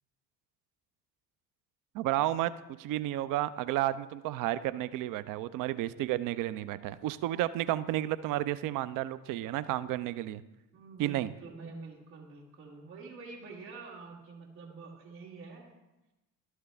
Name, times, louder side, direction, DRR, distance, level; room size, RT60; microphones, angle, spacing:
voice 1, 1.9-2.5 2.8-10.4 11.0-11.3, right 14 dB, 45° right, 16 dB, 0.5 m, -32 dB
voice 2, 10.7-15.7, right 4 dB, 85° right, -4 dB, 1.9 m, -47 dB
12.5 x 4.7 x 3.3 m, 1.0 s
figure-of-eight pair, 50°, 48 cm